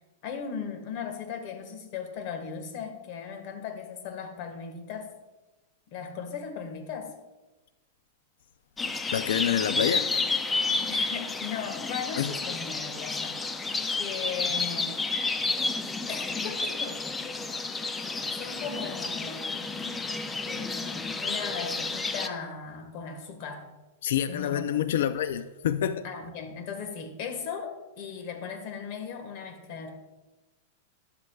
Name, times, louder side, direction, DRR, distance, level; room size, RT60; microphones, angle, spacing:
voice 1, 0.2-5.1 5.9-7.1 10.9-13.7 14.0-15.0 16.1-17.0 18.3-19.8 20.4-23.7 24.3-24.6 26.0-29.9, left 6 dB, 40° left, 1.5 m, -37 dB
sound 1, 8.8-22.3, left 3 dB, 10° left, 0.4 m, -31 dB
voice 2, 9.1-10.1 12.2-12.3 24.0-26.0, left 10 dB, 70° left, 0.4 m, -27 dB
12.5 x 12.0 x 2.3 m
supercardioid pair, 165°, 0 cm